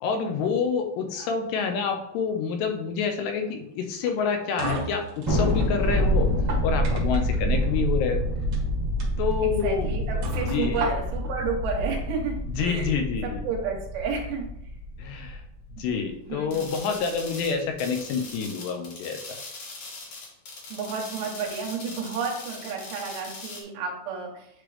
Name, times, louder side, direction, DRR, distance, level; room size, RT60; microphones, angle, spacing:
voice 1, 0.0-6.3 6.6-8.4 9.2-10.8 12.5-13.4 15.0-15.4 15.8-19.2, left 6 dB, 80° left, 4 dB, 2.9 m, -28 dB
sound 1, 4.0-5.7 6.3-7.4 8.4-8.6 9.0-9.1 9.6-9.7 10.2-11.3, right 2 dB, 60° right, 2.0 m, -33 dB
Thunder, 5.3-15.9, equal, 15° right, 1.1 m, -27 dB
voice 2, 9.4-12.9 13.2-14.5 16.2-16.6 20.7-24.5, right 5 dB, 80° right, -1 dB, 3.2 m, -31 dB
sound 2, 16.5-23.6, left 3 dB, 55° left, 2.2 m, -41 dB
9.9 x 3.3 x 3.3 m, 0.78 s
omnidirectional pair, 5.0 m